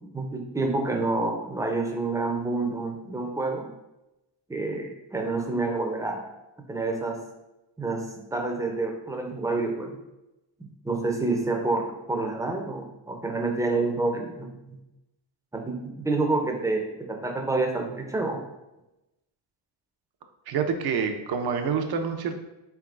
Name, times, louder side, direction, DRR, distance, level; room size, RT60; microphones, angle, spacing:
voice 1, 0.0-3.7 4.5-6.2 6.7-7.2 7.8-10.0 10.6-14.5 15.5-18.4, right 3 dB, 10° right, 3 dB, 0.5 m, -28 dB
voice 2, 20.5-22.4, right 6 dB, 60° right, 6 dB, 0.6 m, -27 dB
3.8 x 3.4 x 2.4 m, 0.96 s
cardioid pair, 95°, 42 cm